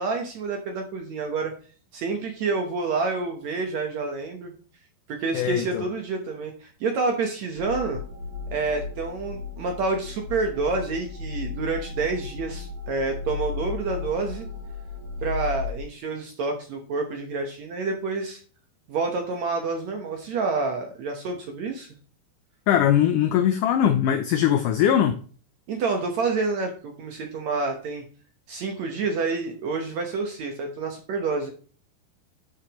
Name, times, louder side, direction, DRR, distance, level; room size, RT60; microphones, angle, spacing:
voice 1, 0.0-1.5 1.9-4.5 5.1-8.0 8.5-14.5 15.2-18.4 18.9-21.9 25.7-28.0 28.5-31.5, right 4 dB, 65° right, 1.8 m, -28 dB
voice 2, 5.3-5.8 22.7-25.2, left 10 dB, 85° left, 1.8 m, -21 dB
sound 1, 7.6-15.8, left 5 dB, 50° right, 1.5 m, -35 dB
9.8 x 6.5 x 3.0 m
omnidirectional pair, 4.4 m